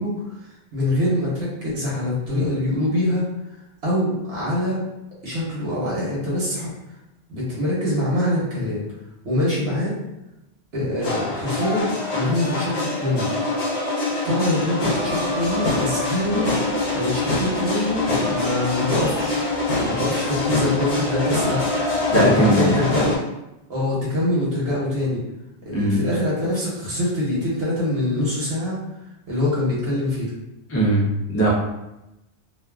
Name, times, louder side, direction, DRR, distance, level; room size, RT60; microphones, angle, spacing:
voice 1, 0.0-4.8 5.2-7.0 7.3-8.8 9.2-10.0 10.7-13.3 14.2-19.4 19.8-21.8 22.2-23.2 23.7-25.2 25.6-28.8 29.3-30.3, left 1 dB, 75° right, -7 dB, 1.1 m, -24 dB
sound 1, 11.0-23.2, left 2 dB, 70° left, 0.9 m, -24 dB
voice 2, 22.1-22.9 25.7-26.0 30.7-31.5, equal, 25° left, -4 dB, 0.3 m, -19 dB
2.5 x 2.4 x 2.3 m, 0.93 s
omnidirectional pair, 1.1 m